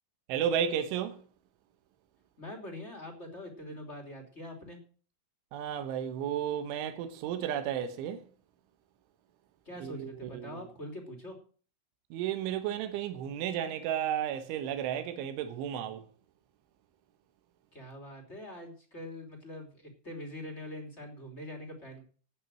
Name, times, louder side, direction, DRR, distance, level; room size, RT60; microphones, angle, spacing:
voice 1, 0.3-1.2 5.5-8.3 9.8-10.6 12.1-16.0, right 9 dB, 85° right, 3.7 m, -33 dB
voice 2, 2.4-4.8 9.6-11.3 17.7-22.0, left 1 dB, 15° left, 2.6 m, -44 dB
12.0 x 9.1 x 7.7 m
omnidirectional pair, 5.4 m